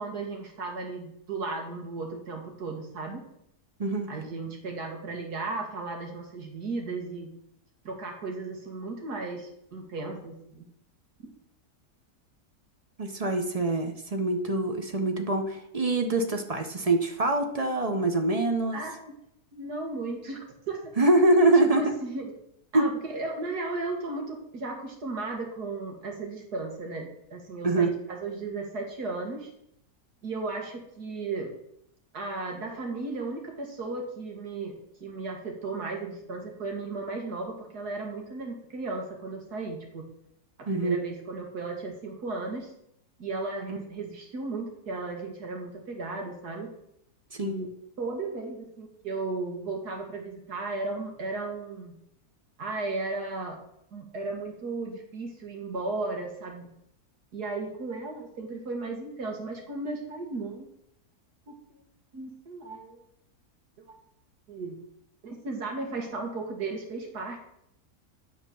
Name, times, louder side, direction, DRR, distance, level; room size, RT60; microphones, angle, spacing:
voice 1, 0.0-3.2 4.1-7.3 7.8-10.7 18.7-19.1 19.5-20.8 21.5-22.3 22.7-29.5 30.2-31.5 32.1-40.1 40.6-42.7 43.2-46.7 47.4-47.7 48.0-51.9 52.6-53.6 53.9-56.7 57.3-60.7 61.5-61.6 62.1-63.0 63.8-63.9 64.5-64.8 65.2-67.4, right 3 dB, 85° right, 2 dB, 2.3 m, -35 dB
voice 2, 13.0-18.8 21.0-21.8 22.7-22.9 27.6-27.9 40.7-41.0 43.7-43.8 47.3-47.6, right 2 dB, 35° right, 5 dB, 0.7 m, -24 dB
9.8 x 4.3 x 6.8 m, 0.74 s
omnidirectional pair, 1.6 m